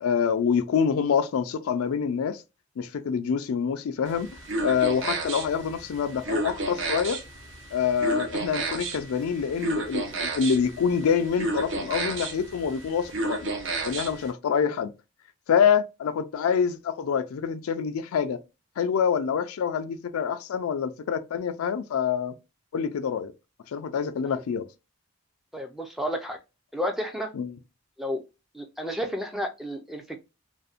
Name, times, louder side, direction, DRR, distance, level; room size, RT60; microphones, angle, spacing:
voice 1, 0.0-2.4 2.8-4.3 4.6-7.2 7.7-13.5 13.8-14.9 15.5-18.4 18.8-22.4 22.7-23.3 23.7-24.7 27.3-27.6, left 7 dB, 80° left, 0.3 m, -26 dB
sound 1, 4.1-14.3, right 3 dB, 60° right, 0.6 m, -32 dB
voice 2, 25.5-26.4 26.7-27.3 28.0-28.2 28.5-30.2, equal, ahead, 0.3 m, -31 dB
2.6 x 2.1 x 2.3 m
head